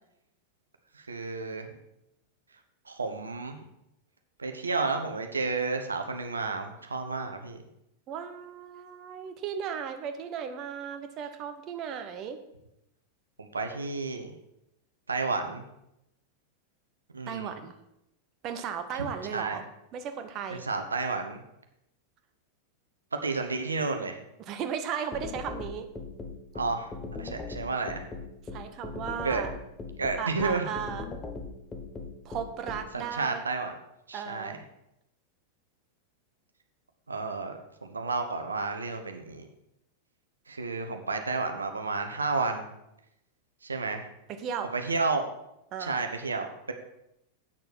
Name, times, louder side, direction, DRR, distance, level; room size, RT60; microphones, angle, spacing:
voice 1, 1.1-1.7 2.9-3.6 4.4-7.6 13.4-14.3 15.1-15.6 17.1-17.5 19.0-19.6 20.5-21.4 23.2-24.2 26.5-26.9 27.2-28.0 29.2-29.4 30.0-30.7 32.9-33.7 34.1-34.6 37.1-39.5 40.5-42.6 43.6-44.1 44.7-45.3 45.8-46.7, right 3 dB, 75° right, 5 dB, 1.0 m, -31 dB
voice 2, 8.1-12.4 17.3-17.7 18.4-19.7 19.9-20.6 24.4-25.9 28.5-29.5 30.2-31.1 32.2-33.4 34.1-34.6 44.4-44.7 45.7-45.9, right 8 dB, 35° right, 7 dB, 1.0 m, -35 dB
sound 1, 25.1-32.8, left 4 dB, 15° left, 1.4 m, -38 dB
8.8 x 6.7 x 6.1 m, 0.84 s
figure-of-eight pair, 90°, 0 cm